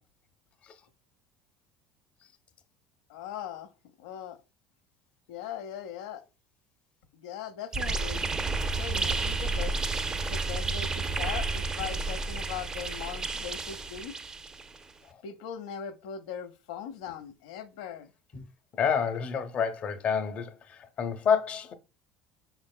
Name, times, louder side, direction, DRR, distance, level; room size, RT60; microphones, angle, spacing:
voice 1, 3.1-3.7 4.0-4.4 5.3-6.3 7.1-8.2 8.7-9.8 10.2-14.2 15.2-18.1, left 8 dB, 85° left, 0.7 m, -40 dB
sound 1, 7.7-14.8, right 3 dB, 20° right, 0.5 m, -31 dB
voice 2, 18.7-21.7, left 6 dB, 40° left, 0.7 m, -28 dB
5.6 x 3.9 x 2.2 m
supercardioid pair, 110°, 3 cm